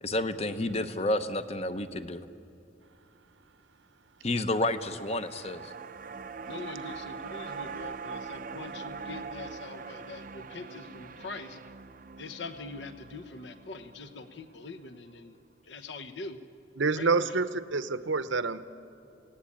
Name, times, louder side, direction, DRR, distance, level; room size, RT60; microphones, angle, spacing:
voice 1, 0.0-2.3 4.2-5.7, left 1 dB, 30° left, 10 dB, 0.9 m, -30 dB
sound 1, 4.4-14.8 15.1-15.2, right 5 dB, 45° right, 0.6 m, -43 dB
voice 2, 6.5-11.6 12.2-15.4 15.7-16.4 17.0-17.1, left 3 dB, 65° left, 10 dB, 1.1 m, -43 dB
voice 3, 16.8-18.6, right 4 dB, 70° right, 13 dB, 0.9 m, -27 dB
28.5 x 17.5 x 8.8 m, 2.7 s
head